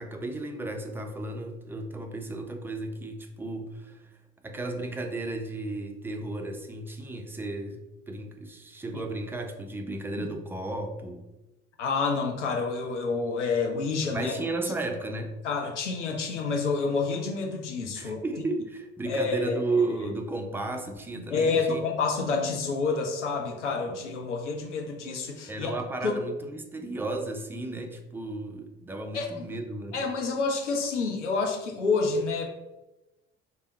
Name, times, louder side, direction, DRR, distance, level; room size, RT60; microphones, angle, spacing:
voice 1, 0.0-4.1 4.4-11.3 14.1-15.3 18.0-21.8 25.5-30.0, right 2 dB, 5° right, 4 dB, 0.4 m, -34 dB
voice 2, 11.8-14.3 15.4-18.2 19.1-19.6 21.1-25.7 26.0-26.2 29.1-29.6 29.9-32.4, left 4 dB, 80° left, 1 dB, 0.7 m, -28 dB
3.4 x 2.1 x 4.0 m, 1.0 s
figure-of-eight pair, 55°, 35 cm